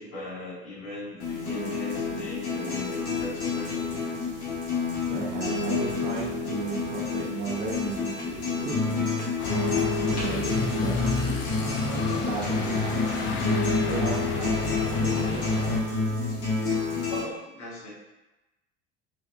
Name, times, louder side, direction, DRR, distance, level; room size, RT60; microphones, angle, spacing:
voice 1, 0.0-3.9 16.8-17.9, left 1 dB, 75° left, -7 dB, 1.3 m, -39 dB
sound 1, 1.2-17.2, left 3 dB, 60° left, 1.5 m, -28 dB
voice 2, 5.1-9.2 9.8-11.0 11.3-12.8 13.9-14.6 15.0-15.7, right 3 dB, 35° right, -4 dB, 0.6 m, -35 dB
sound 2, 9.4-15.8, left 5 dB, 35° left, 0.5 m, -32 dB
3.4 x 2.6 x 2.3 m, 1.0 s
hypercardioid pair, 65°, 34 cm